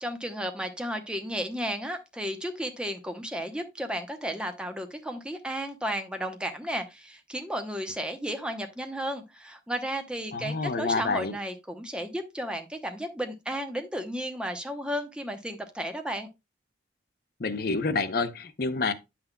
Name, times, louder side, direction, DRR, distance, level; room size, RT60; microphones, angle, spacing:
voice 1, 0.0-16.3, equal, 5° right, 0.8 m, -33 dB
voice 2, 10.3-11.4 17.4-18.9, left 3 dB, 50° left, 0.6 m, -28 dB
9.4 x 5.9 x 2.2 m
head